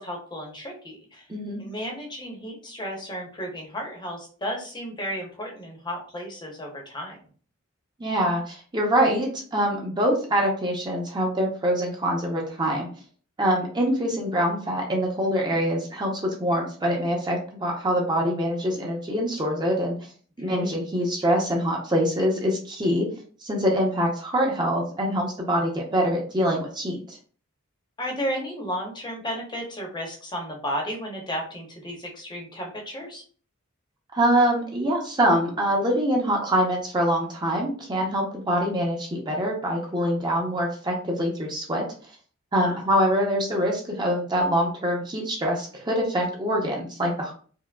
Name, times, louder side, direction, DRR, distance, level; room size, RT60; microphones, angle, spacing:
voice 1, 0.0-1.2 1.6-7.2 20.4-20.7 28.0-33.2 42.6-42.8, equal, 20° left, 0 dB, 0.7 m, -33 dB
voice 2, 1.3-1.6 8.0-12.9 13.4-20.0 20.4-23.1 23.4-27.2 34.1-41.8 42.5-47.3, equal, 20° right, -1 dB, 0.6 m, -24 dB
4.5 x 2.0 x 2.2 m, 0.42 s
head